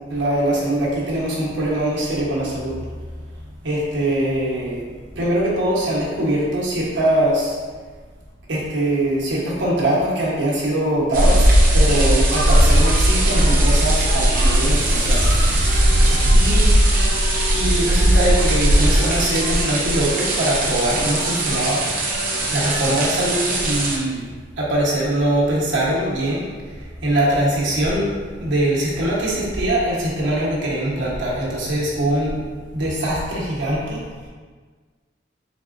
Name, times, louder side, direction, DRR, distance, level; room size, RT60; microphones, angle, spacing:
voice 1, 0.1-2.8 3.6-4.8 5.2-7.6 8.5-11.4 11.7-17.2 17.5-21.8 22.5-24.3 24.6-28.1 28.4-32.4 32.7-34.0, right 1 dB, 75° right, -5 dB, 1.1 m, -22 dB
sound 1, 11.1-24.0, right 1 dB, 50° right, 0.7 m, -18 dB
4.0 x 3.6 x 2.5 m, 1.5 s
head